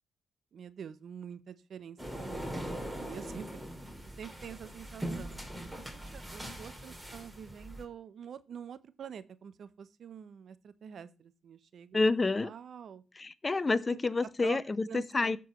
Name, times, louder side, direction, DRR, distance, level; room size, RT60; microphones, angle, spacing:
voice 1, 0.5-3.6 4.2-12.0 12.4-13.0 13.9-14.0 14.4-14.6 14.9-15.4, right 8 dB, 65° right, 0.7 m, -46 dB
sound 1, 2.0-7.8, right 1 dB, 5° right, 2.9 m, -41 dB
voice 2, 11.9-12.5 13.2-15.4, left 3 dB, 30° left, 0.7 m, -29 dB
13.5 x 4.6 x 3.0 m
supercardioid pair, 55°, 0 cm